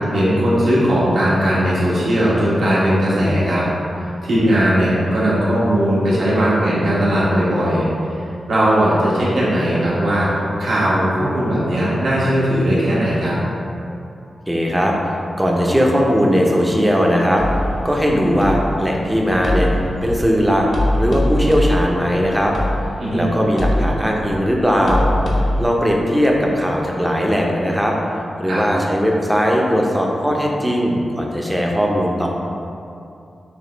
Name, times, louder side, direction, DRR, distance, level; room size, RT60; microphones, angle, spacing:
voice 1, 0.1-3.6 3.9-7.8 8.5-10.3 10.6-13.4 23.0-23.3 28.5-28.6, equal, 80° right, -8 dB, 1.3 m, -18 dB
voice 2, 14.5-17.4 17.8-19.7 20.0-20.7 20.9-22.6 23.1-25.1 25.6-27.9 28.4-32.3, equal, 5° right, -1 dB, 0.6 m, -18 dB
sound 1, 17.4-25.6, left 1 dB, 65° left, 0.7 m, -23 dB
6.6 x 2.3 x 3.2 m, 2.6 s
wide cardioid pair, 105°, 0 cm